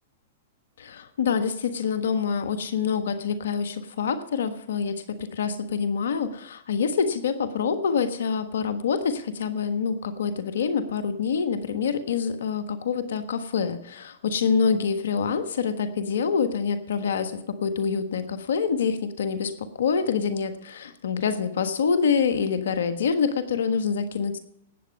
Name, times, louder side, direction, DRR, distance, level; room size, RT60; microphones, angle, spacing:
voice 1, 0.8-24.4, left 6 dB, 80° left, 10 dB, 1.4 m, -26 dB
18.5 x 8.2 x 5.3 m, 0.77 s
hypercardioid pair, 120°, 0 cm